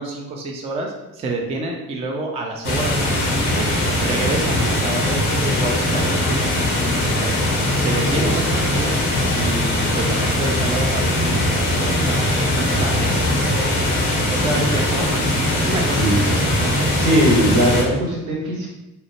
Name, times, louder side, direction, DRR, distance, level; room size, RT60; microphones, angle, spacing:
voice 1, 0.0-3.7 4.0-7.4 7.7-9.0 9.3-14.0 14.3-15.3 15.5-17.1, right 2 dB, 15° right, 1 dB, 0.3 m, -28 dB
sound 1, 2.6-17.8, left 1 dB, 80° left, 0.7 m, -20 dB
voice 2, 16.9-18.8, equal, 75° right, -3 dB, 0.8 m, -19 dB
2.9 x 2.1 x 2.9 m, 0.99 s
figure-of-eight pair, 40°, 44 cm